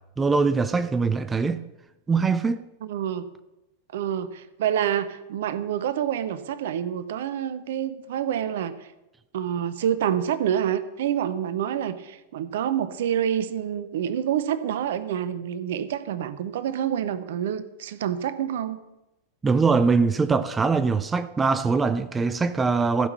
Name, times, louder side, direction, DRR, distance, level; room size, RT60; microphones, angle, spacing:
voice 1, 0.2-1.6 2.1-2.6 19.4-23.1, right 4 dB, 15° right, 0.5 m, -22 dB
voice 2, 2.8-3.3 3.9-8.7 9.3-18.8, right 9 dB, 55° right, 0.7 m, -27 dB
14.5 x 5.9 x 6.7 m
figure-of-eight pair, 90°, 0 cm